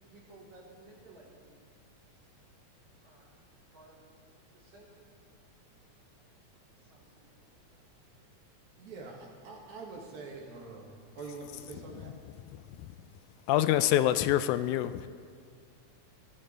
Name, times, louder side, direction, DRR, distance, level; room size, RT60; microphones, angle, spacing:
voice 1, 0.1-1.6 3.0-3.3 3.7-4.0 4.5-5.0 6.8-7.8, right 2 dB, 50° right, -6 dB, 4.6 m, -56 dB
voice 2, 8.8-12.1, right 3 dB, 75° right, -1 dB, 3.3 m, -45 dB
voice 3, 13.5-15.1, left 13 dB, 85° left, 13 dB, 2.0 m, -26 dB
22.5 x 13.5 x 3.3 m, 2.1 s
omnidirectional pair, 3.4 m